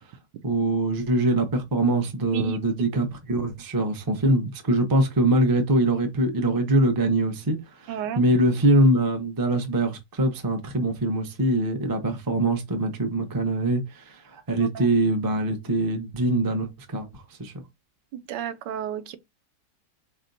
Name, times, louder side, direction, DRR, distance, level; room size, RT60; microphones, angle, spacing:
voice 1, 0.4-17.1 17.4-17.6, right 1 dB, 30° right, 0.3 m, -23 dB
voice 2, 7.9-8.2 14.6-14.9 18.1-19.2, right 10 dB, 90° right, 1.3 m, -32 dB
4.3 x 3.3 x 2.6 m
omnidirectional pair, 1.8 m